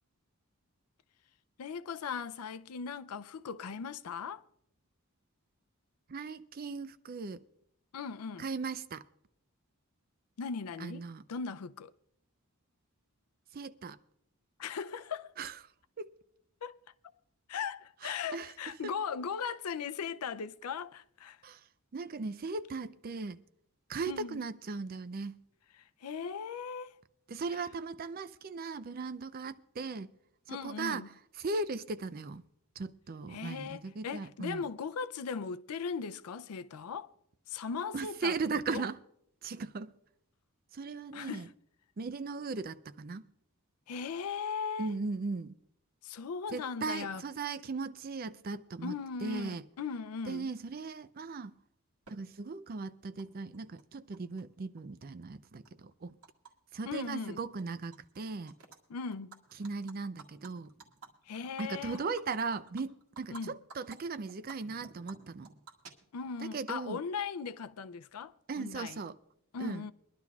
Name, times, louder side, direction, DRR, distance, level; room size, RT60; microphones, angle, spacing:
voice 1, 1.6-4.4 7.9-8.5 10.4-11.9 14.6-15.4 16.6-16.8 17.5-21.4 24.1-24.4 25.8-27.0 27.5-27.6 30.5-31.1 33.3-37.1 37.5-38.4 38.7-38.8 41.1-41.5 43.9-45.0 46.0-47.2 48.8-50.5 56.9-57.4 58.9-59.4 61.3-62.1 63.3-63.5 66.1-69.0 69.5-69.9, left 6 dB, 90° left, 0.5 m, -38 dB
voice 2, 6.1-7.4 8.4-9.0 10.8-11.2 13.5-14.0 15.4-15.6 16.0-16.1 18.0-18.5 18.8-18.9 21.4-21.7 21.9-23.4 23.9-25.3 27.3-30.1 30.5-31.0 31.4-32.4 32.8-34.7 37.9-39.0 39.4-39.9 40.7-41.5 42.0-43.3 44.8-45.6 46.5-48.9 49.2-49.6 50.3-51.5 52.1-56.2 56.7-58.5 59.6-60.7 61.6-65.5 66.4-67.0 68.5-69.2 69.6-69.8, right 4 dB, 40° right, 0.4 m, -38 dB
Animal, 52.1-52.2 53.2-53.3 53.5-54.4 54.8-56.5 56.8-57.1 57.4-58.2 58.5-58.8 59.1-63.4 63.7-64.0 64.3-66.4, right 4 dB, 80° right, 1.8 m, -53 dB
23.5 x 11.5 x 2.3 m
head